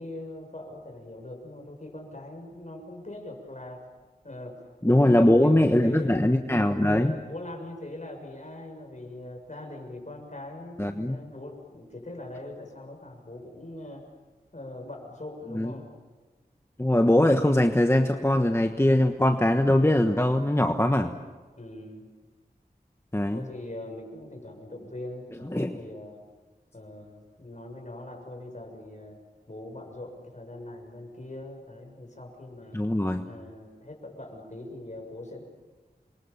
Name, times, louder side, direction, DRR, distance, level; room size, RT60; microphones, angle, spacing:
voice 1, 0.0-3.8 4.2-6.3 7.0-14.0 14.5-15.9 21.6-22.1 23.3-26.2 26.7-29.2 29.5-32.8 33.2-35.4, left 1 dB, 45° left, 3 dB, 6.9 m, -41 dB
voice 2, 4.8-7.1 10.8-11.2 15.5-15.7 16.8-21.1 23.1-23.4 25.5-25.7 32.7-33.2, left 1 dB, 15° left, 6 dB, 1.3 m, -21 dB
28.5 x 23.5 x 7.2 m, 1.3 s
wide cardioid pair, 60°, 17 cm